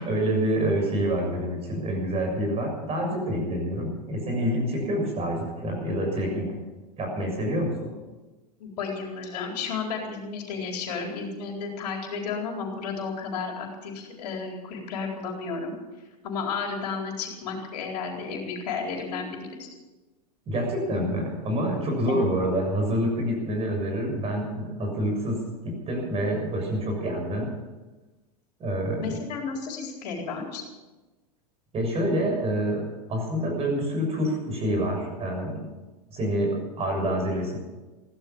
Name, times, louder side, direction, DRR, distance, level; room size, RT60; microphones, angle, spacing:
voice 1, 0.0-6.5 7.0-7.9 20.5-25.4 25.6-27.5 28.6-29.2 31.7-32.8 33.1-35.7 36.1-37.6, equal, 30° right, 2 dB, 6.9 m, -27 dB
voice 2, 8.6-15.8 16.2-19.7 22.1-22.3 29.0-30.6, left 5 dB, 70° left, 1 dB, 4.2 m, -33 dB
16.0 x 12.5 x 7.3 m, 1.2 s
hypercardioid pair, 115°, 21 cm